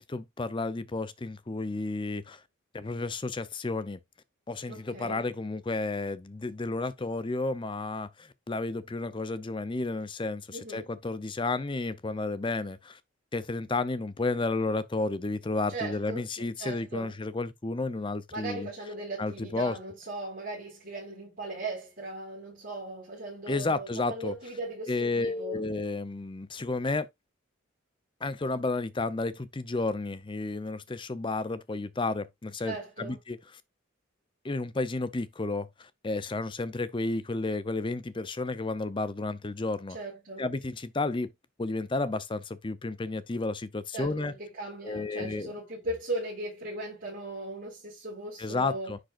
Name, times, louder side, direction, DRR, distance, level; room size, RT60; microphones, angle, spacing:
voice 1, 0.0-2.4 2.7-4.0 4.5-13.0 13.3-18.7 19.2-19.7 23.5-24.3 24.9-27.1 28.2-33.6 34.4-40.0 40.4-41.3 41.6-44.3 44.8-45.5 48.4-49.0, left 3 dB, 25° left, 0.5 m, -32 dB
voice 2, 4.7-5.2 10.5-10.9 15.7-16.2 16.6-17.1 18.3-25.6 32.6-33.2 39.9-40.4 43.9-48.9, right 2 dB, 45° right, 4.8 m, -38 dB
10.0 x 5.1 x 2.5 m
head